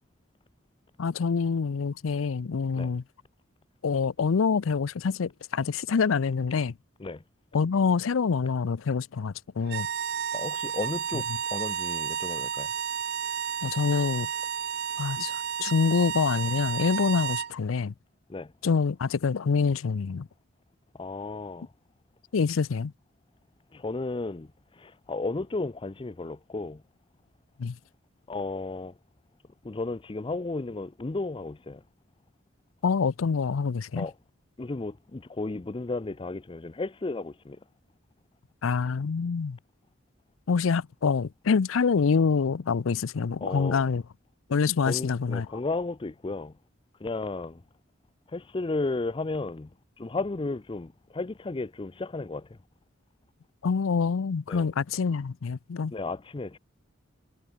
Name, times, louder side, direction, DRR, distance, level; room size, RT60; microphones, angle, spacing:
voice 1, 1.0-3.0 3.8-6.8 7.5-9.9 13.6-14.3 15.0-17.9 18.6-20.3 22.3-22.9 27.6-27.8 32.8-34.1 38.6-39.6 40.5-44.0 44.5-45.5 53.6-55.9, left 5 dB, 85° left, 0.5 m, -26 dB
sound 1, 9.6-17.5, right 9 dB, 55° right, 0.5 m, -32 dB
voice 2, 10.3-12.7 18.3-18.5 20.9-21.7 23.7-26.8 28.3-28.9 29.6-31.8 34.0-34.1 34.6-37.6 43.4-43.8 44.9-46.6 47.0-47.6 48.3-49.7 50.0-52.6 54.5-54.7 55.9-56.6, left 3 dB, 25° left, 0.5 m, -34 dB
head